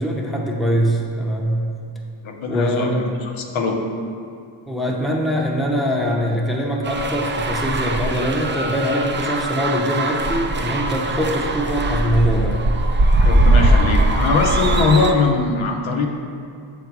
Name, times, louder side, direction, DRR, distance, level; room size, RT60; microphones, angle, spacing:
voice 1, 0.0-1.7 2.5-3.0 4.7-12.6 13.6-13.8, equal, ahead, -2 dB, 0.8 m, -22 dB
voice 2, 2.2-3.8 13.2-16.1, left 4 dB, 80° left, 2 dB, 0.8 m, -21 dB
sound 1, 6.8-15.1, right 2 dB, 25° right, 0.4 m, -20 dB
7.1 x 4.0 x 4.7 m, 2.3 s
cardioid pair, 95°, 47 cm